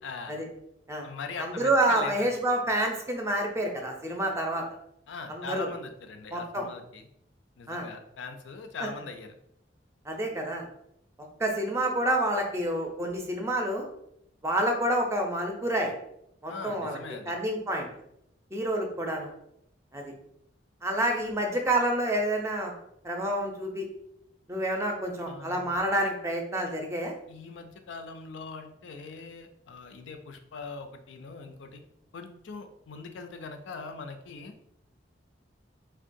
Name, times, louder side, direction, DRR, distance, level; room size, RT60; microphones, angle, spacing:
voice 1, 0.0-0.4 1.0-2.3 5.1-7.1 7.6-9.3 16.5-17.3 25.2-25.8 27.3-31.8 32.1-34.5, left 4 dB, 85° left, 6 dB, 0.4 m, -41 dB
voice 2, 1.4-4.6 5.3-5.7 6.3-6.7 7.7-7.9 10.1-10.7 11.4-13.8 14.4-15.9 16.4-17.0 17.3-17.9 18.5-19.3 19.9-20.1 20.8-22.7 23.0-23.9 24.5-27.1, right 1 dB, 15° right, 2 dB, 0.5 m, -28 dB
3.5 x 2.2 x 2.6 m, 0.76 s
head